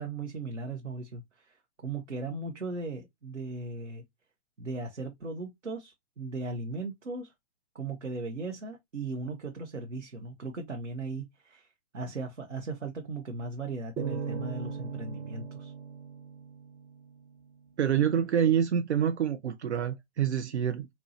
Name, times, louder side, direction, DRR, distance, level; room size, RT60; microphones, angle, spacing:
voice 1, 0.0-4.0 4.6-7.3 7.7-15.7, right 3 dB, 85° right, 0.9 m, -37 dB
sound 1, 14.0-17.3, right 6 dB, 10° right, 0.8 m, -38 dB
voice 2, 17.8-20.9, right 9 dB, 70° right, 0.5 m, -27 dB
4.1 x 2.3 x 2.6 m
figure-of-eight pair, 120°, 36 cm